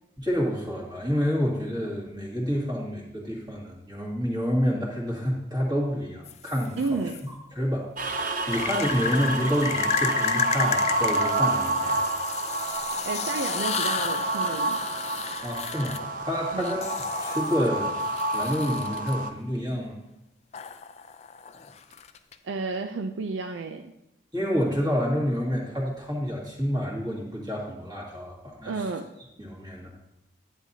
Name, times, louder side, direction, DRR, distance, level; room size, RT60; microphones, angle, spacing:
voice 1, 0.2-12.0 15.4-16.9 17.2-20.0 24.3-28.9 29.4-29.9, equal, 20° right, -4 dB, 2.1 m, -28 dB
sound 1, 6.2-7.2 8.5-19.1 20.5-22.3, left 7 dB, 35° left, 0.4 m, -33 dB
voice 2, 6.8-7.2 13.0-14.8 16.5-16.8 22.4-23.9 28.7-29.1, right 3 dB, 90° right, 6 dB, 0.5 m, -31 dB
sound 2, 8.0-19.3, right 2 dB, 45° right, 0.6 m, -29 dB
11.0 x 8.7 x 2.8 m, 0.88 s
head